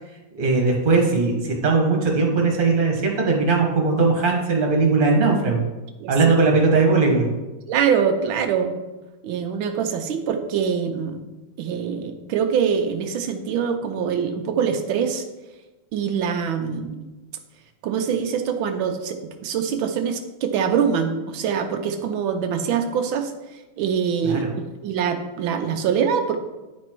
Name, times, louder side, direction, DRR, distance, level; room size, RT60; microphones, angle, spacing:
voice 1, 0.3-5.6 6.1-7.3 24.2-24.5, right 3 dB, 30° right, 0 dB, 1.4 m, -19 dB
voice 2, 6.0-6.3 7.7-8.7 9.2-11.2 11.6-15.2 15.9-17.0 17.8-23.3 23.8-26.4, right 7 dB, 90° right, 6 dB, 1.5 m, -24 dB
9.7 x 4.2 x 4.6 m, 1.1 s
omnidirectional pair, 2.1 m